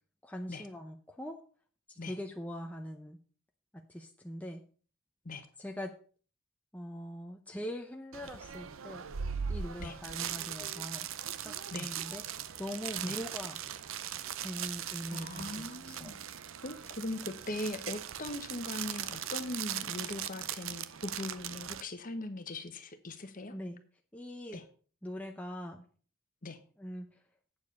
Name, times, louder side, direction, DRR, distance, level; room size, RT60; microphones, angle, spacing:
voice 1, 0.2-1.4 1.9-3.2 3.7-4.6 5.6-5.9 6.7-9.1 9.5-11.1 11.4-13.6 14.4-16.2 23.5-23.8 24.1-24.6 25.0-25.8 26.8-27.2, equal, 5° left, 3 dB, 0.6 m, -42 dB
sound 1, 8.1-21.8, right 9 dB, 60° right, 0.6 m, -39 dB
voice 2, 15.1-16.2 16.6-23.5 24.5-24.6 26.4-26.6, left 2 dB, 40° left, 9 dB, 1.0 m, -40 dB
8.6 x 7.2 x 5.3 m, 0.41 s
head